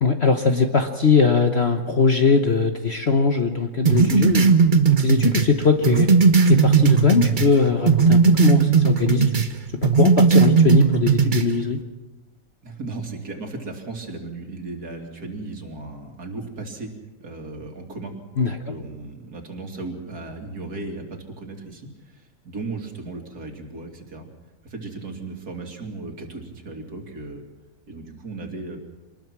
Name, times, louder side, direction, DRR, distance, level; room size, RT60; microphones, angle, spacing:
voice 1, 0.0-4.5 5.0-6.1 6.4-9.3 9.8-11.8 18.4-18.6, left 5 dB, 40° left, 5 dB, 1.2 m, -20 dB
sound 1, 3.9-7.5 7.9-9.5 9.8-11.5, right 5 dB, 30° right, 1.0 m, -17 dB
voice 2, 12.6-16.9 17.2-18.1 18.7-24.3 24.6-27.4 27.9-28.8, right 3 dB, 55° right, 3 dB, 3.1 m, -36 dB
25.5 x 20.0 x 6.1 m, 1.2 s
omnidirectional pair, 1.9 m